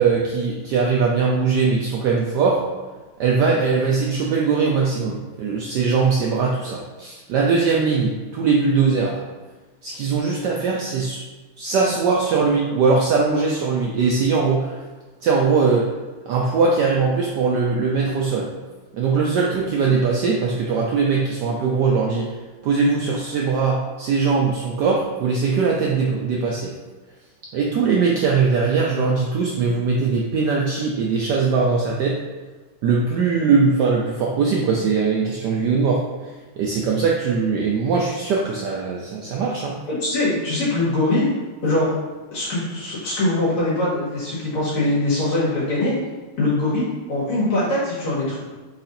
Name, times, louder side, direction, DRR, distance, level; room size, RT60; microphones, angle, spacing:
voice 1, 0.0-2.6 3.2-9.2 9.8-11.2 11.6-14.8 15.2-15.9 16.3-18.5 18.9-22.3 22.6-26.7 27.5-32.2 32.8-36.0 36.6-39.8, right 4 dB, 80° right, -2 dB, 0.9 m, -20 dB
voice 2, 39.9-41.3 41.6-42.0 42.3-45.9 46.4-48.4, left 2 dB, 75° left, -7 dB, 2.6 m, -22 dB
4.8 x 4.2 x 2.6 m, 1.3 s
omnidirectional pair, 2.4 m